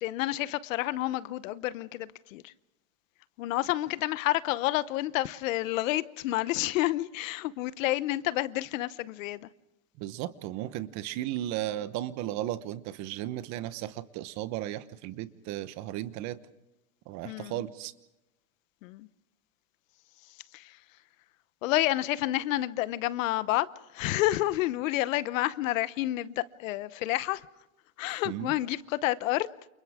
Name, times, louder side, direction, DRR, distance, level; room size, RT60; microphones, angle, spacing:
voice 1, 0.0-2.5 3.4-9.5 17.2-17.6 18.8-19.1 20.5-20.8 21.6-23.7 23.9-27.5 28.0-29.5, left 16 dB, 60° left, 1.0 m, -29 dB
voice 2, 10.0-16.4 17.1-17.9 28.2-28.5, right 13 dB, 40° right, 1.1 m, -35 dB
29.5 x 29.0 x 3.6 m
supercardioid pair, 145°, 45 cm